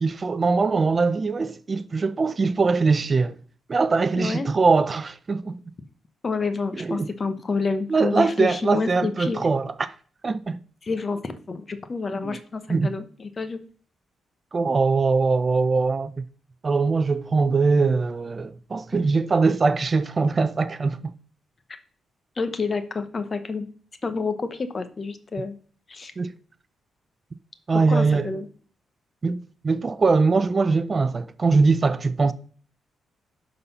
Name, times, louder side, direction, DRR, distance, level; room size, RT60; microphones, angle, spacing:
voice 1, 0.0-3.4 3.7-5.6 6.8-7.1 7.9-9.9 10.2-10.6 12.2-12.4 12.7-12.9 14.5-16.1 16.6-21.1 26.2-26.3 27.7-28.3 29.2-32.3, right 4 dB, 35° right, 0.5 m, -22 dB
voice 2, 4.2-4.5 6.2-9.4 10.8-13.6 22.4-23.7 24.0-25.6 25.9-26.1 27.7-28.5, left 4 dB, 35° left, 1.0 m, -28 dB
11.0 x 4.0 x 5.5 m
cardioid pair, 105°, 0 cm